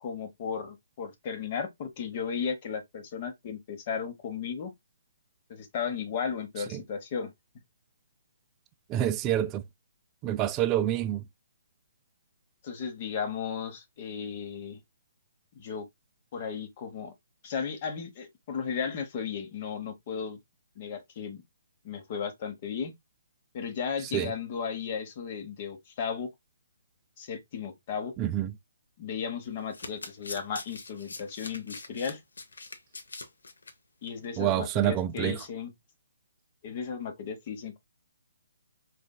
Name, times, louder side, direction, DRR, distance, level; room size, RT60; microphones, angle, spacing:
voice 1, 0.0-4.7 5.5-7.3 12.6-14.8 15.6-15.9 16.3-17.1 17.4-20.4 20.8-21.4 21.8-22.9 23.5-26.3 27.2-28.1 29.0-32.2 34.0-35.7 36.6-37.8, left 6 dB, 40° left, 0.8 m, -35 dB
voice 2, 8.9-9.6 10.2-11.2 24.1-24.3 28.2-28.5 34.4-35.4, right 12 dB, 20° right, 0.3 m, -27 dB
Domestic sounds home sounds, 29.4-33.7 34.1-34.3 34.5-34.6, left 3 dB, 75° left, 0.7 m, -43 dB
4.1 x 2.6 x 2.2 m
figure-of-eight pair, 140°, 0 cm